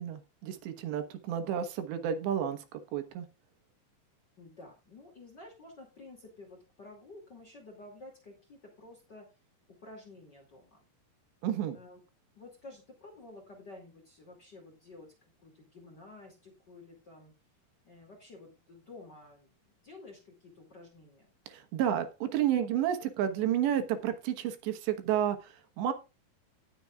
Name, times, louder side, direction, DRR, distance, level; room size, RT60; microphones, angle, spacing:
voice 1, 0.0-3.3 11.4-11.8 21.5-25.9, right 10 dB, 80° right, 8 dB, 3.4 m, -31 dB
voice 2, 4.4-9.3 9.8-10.8 11.7-12.0 12.3-15.1 15.4-17.3 17.8-21.4, left 2 dB, 30° left, 2 dB, 2.2 m, -51 dB
18.0 x 7.1 x 2.4 m, 0.28 s
omnidirectional pair, 5.0 m